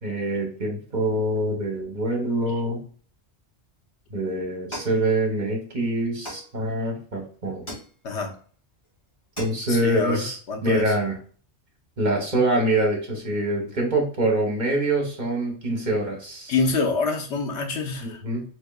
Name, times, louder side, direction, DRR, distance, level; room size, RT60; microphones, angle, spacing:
voice 1, 0.0-2.8 4.1-7.7 9.4-11.2 12.0-16.5 18.0-18.4, right 1 dB, 45° right, 0 dB, 1.2 m, -25 dB
sound 1, 4.7-5.7 6.2-7.0 7.7-8.4 8.8-8.9 9.2-9.9, left 1 dB, 25° left, 2.0 m, -40 dB
voice 2, 9.7-10.9 16.5-18.2, left 4 dB, 80° left, 2 dB, 1.1 m, -26 dB
4.3 x 3.1 x 2.3 m, 0.43 s
omnidirectional pair, 1.2 m